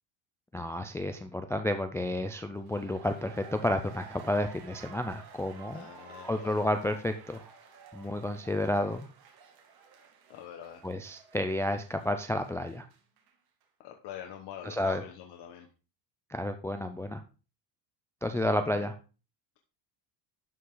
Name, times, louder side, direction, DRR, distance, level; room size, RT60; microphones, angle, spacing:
voice 1, 0.5-5.9 6.2-7.4 7.9-9.1 10.8-12.9 14.6-15.0 16.3-17.2 18.2-19.0, left 1 dB, 5° left, 7 dB, 0.3 m, -31 dB
sound 1, 2.5-13.3 13.6-13.7, right 5 dB, 50° right, 2.4 m, -53 dB
voice 2, 5.6-6.5 10.3-10.8 13.8-15.7 18.7-18.8, left 10 dB, 55° left, 3 dB, 1.4 m, -44 dB
11.5 x 5.5 x 3.8 m, 0.33 s
cardioid pair, 140°, 47 cm